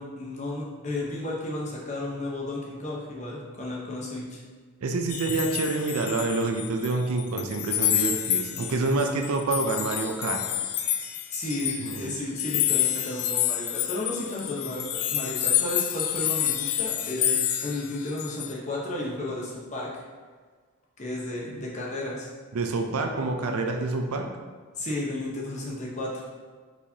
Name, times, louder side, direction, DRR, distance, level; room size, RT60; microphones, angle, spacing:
voice 1, 0.0-4.4 11.3-19.9 21.0-22.3 24.8-26.4, left 1 dB, 30° left, -4 dB, 0.8 m, -33 dB
voice 2, 4.8-10.4 11.8-12.1 22.5-24.3, right 3 dB, 85° right, 4 dB, 0.5 m, -27 dB
sound 1, 5.1-6.9 7.2-18.5, left 11 dB, 80° left, 0.4 m, -28 dB
4.7 x 4.0 x 2.8 m, 1.5 s
head